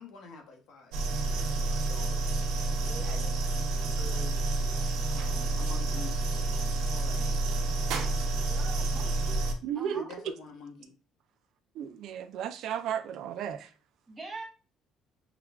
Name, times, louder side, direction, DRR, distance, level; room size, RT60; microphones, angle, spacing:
voice 1, 0.0-2.4 2.8-3.5 3.9-4.4 5.1-6.2 6.9-7.2 9.9-11.0, left 4 dB, 55° left, 0.9 m, -48 dB
sound 1, 0.9-9.5, right 2 dB, 80° right, 0.8 m, -29 dB
voice 2, 2.9-3.6 8.5-9.4 9.7-10.3 14.1-14.4, right 2 dB, 15° right, 0.8 m, -45 dB
voice 3, 9.6-10.1 11.7-13.7, right 9 dB, 55° right, 0.3 m, -34 dB
5.8 x 2.3 x 2.3 m
cardioid pair, 170°, 0 cm